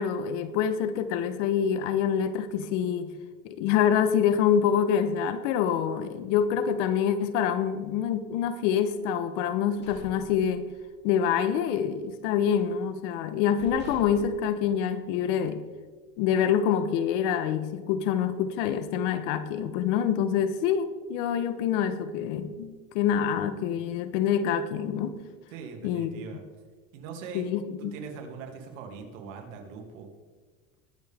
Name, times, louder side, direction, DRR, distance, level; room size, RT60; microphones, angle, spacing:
voice 1, 0.0-3.1 3.4-10.7 11.0-15.6 16.2-25.1 25.8-26.1 27.3-28.0, left 8 dB, 70° left, 11 dB, 1.2 m, -26 dB
sound 1, 9.5-11.1 11.4-11.7 12.0-12.8 13.2-13.3 13.6-15.4, equal, 25° left, 3.0 m, -48 dB
voice 2, 25.5-26.4 26.9-27.5 27.9-30.1, right 5 dB, 80° right, 2 dB, 2.4 m, -41 dB
20.5 x 7.1 x 3.6 m, 1.4 s
supercardioid pair, 145°, 38 cm